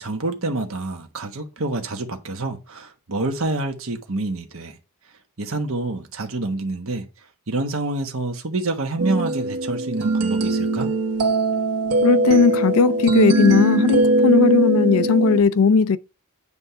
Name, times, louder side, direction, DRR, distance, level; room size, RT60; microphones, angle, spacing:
voice 1, 0.0-4.8 5.4-7.1 7.5-10.9, right 2 dB, 65° right, 1.2 m, -27 dB
sound 1, 9.0-15.4, right 2 dB, 85° right, 1.1 m, -20 dB
voice 2, 12.0-16.0, left 5 dB, 65° left, 0.4 m, -17 dB
9.6 x 3.6 x 5.6 m
head